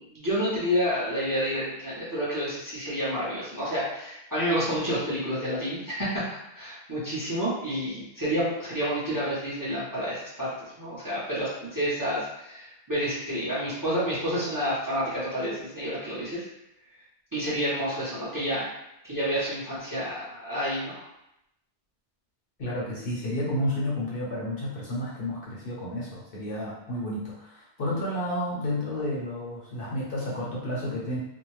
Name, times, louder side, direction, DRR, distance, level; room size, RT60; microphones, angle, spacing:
voice 1, 0.0-16.5 17.3-18.7 19.0-21.1, equal, 20° right, -10 dB, 0.8 m, -29 dB
voice 2, 22.6-31.2, left 1 dB, 60° left, -5 dB, 0.9 m, -31 dB
2.6 x 2.1 x 3.1 m, 0.83 s
omnidirectional pair, 1.1 m